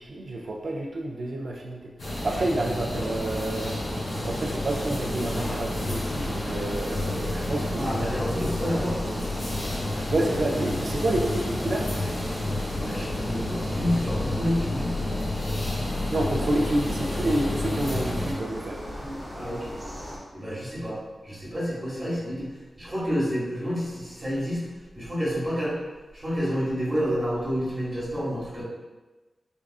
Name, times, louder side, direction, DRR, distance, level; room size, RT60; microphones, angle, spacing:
voice 1, 0.0-1.9 2.2-3.8 4.2-8.1 10.1-11.9 16.1-18.8, right 1 dB, 55° right, 0 dB, 0.3 m, -29 dB
sound 1, 2.0-18.3, left 1 dB, 80° left, 1.1 m, -30 dB
sound 2, 2.9-20.2, equal, 10° left, 0.6 m, -39 dB
voice 2, 7.7-9.0 12.8-15.0 18.9-19.7 20.3-22.5 22.8-24.7 24.9-25.8 26.1-28.6, equal, 25° right, -7 dB, 1.0 m, -29 dB
3.6 x 2.3 x 2.3 m, 1.2 s
wide cardioid pair, 160°, 0 cm